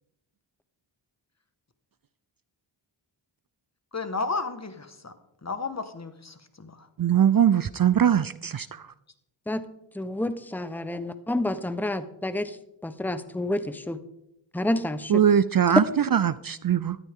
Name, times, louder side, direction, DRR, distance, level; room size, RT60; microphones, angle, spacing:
voice 1, 3.9-5.1 5.4-6.9, left 4 dB, 35° left, 9 dB, 1.6 m, -33 dB
voice 2, 7.0-8.9 15.1-17.0, right 9 dB, 45° right, 16 dB, 0.5 m, -21 dB
voice 3, 9.9-12.6 12.8-14.0 14.5-15.2, left 1 dB, 5° left, 12 dB, 1.0 m, -29 dB
14.5 x 13.0 x 3.7 m, 0.83 s
cardioid pair, 50°, 48 cm